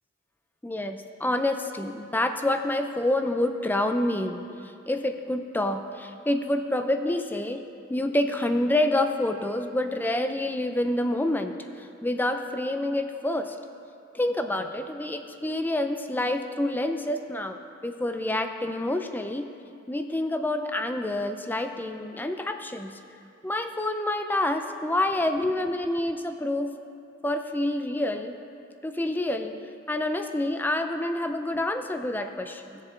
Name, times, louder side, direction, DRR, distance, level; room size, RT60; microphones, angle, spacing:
voice 1, 0.6-4.5 4.9-7.6 7.9-13.6 14.1-19.5 19.9-22.9 23.4-26.7 27.2-28.4 28.8-29.6 29.9-32.8, left 1 dB, 10° left, 7 dB, 0.4 m, -27 dB
17.5 x 7.3 x 3.8 m, 2.6 s
head